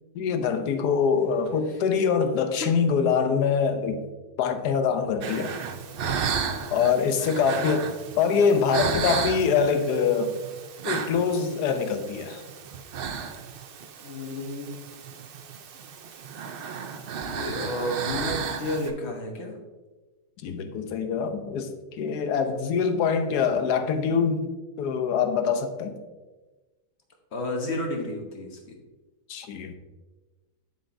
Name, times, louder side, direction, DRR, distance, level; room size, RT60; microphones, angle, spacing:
voice 1, 0.1-4.0 4.4-5.5 6.7-10.4 10.8-12.4 20.4-24.5 24.8-25.9 29.3-29.8, left 6 dB, 90° left, 8 dB, 1.2 m, -24 dB
sound 1, 5.2-18.9, right 6 dB, 85° right, 0.5 m, -34 dB
voice 2, 14.0-14.7 17.2-19.5 27.3-28.7, left 1 dB, 45° left, 2 dB, 1.2 m, -31 dB
7.5 x 7.0 x 2.6 m, 1.2 s
omnidirectional pair, 1.7 m